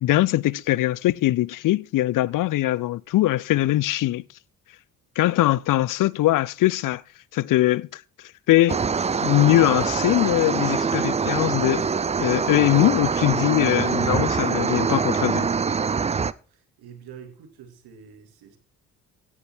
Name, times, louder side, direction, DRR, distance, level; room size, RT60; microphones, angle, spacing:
voice 1, 0.0-4.2 5.2-7.0 7.3-8.0 8.5-8.8 9.2-11.9 12.2-15.5, left 15 dB, 50° left, 0.6 m, -21 dB
sound 1, 8.7-16.3, right 5 dB, 15° right, 0.5 m, -24 dB
voice 2, 16.5-18.6, right 7 dB, 65° right, 2.6 m, -46 dB
17.0 x 6.0 x 4.4 m
hypercardioid pair, 45°, 40 cm